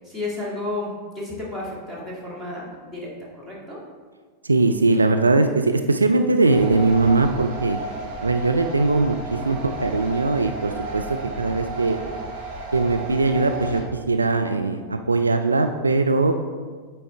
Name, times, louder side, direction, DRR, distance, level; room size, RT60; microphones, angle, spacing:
voice 1, 0.0-0.9 1.2-3.8, left 2 dB, 10° right, -5 dB, 2.0 m, -32 dB
voice 2, 4.4-7.8 8.2-11.0 11.4-12.0 12.7-16.3, right 3 dB, 80° right, 6 dB, 0.3 m, -20 dB
sound 1, 6.5-13.8, right 2 dB, 45° right, 1.4 m, -33 dB
8.9 x 4.3 x 3.2 m, 1.5 s
figure-of-eight pair, 90°, 0 cm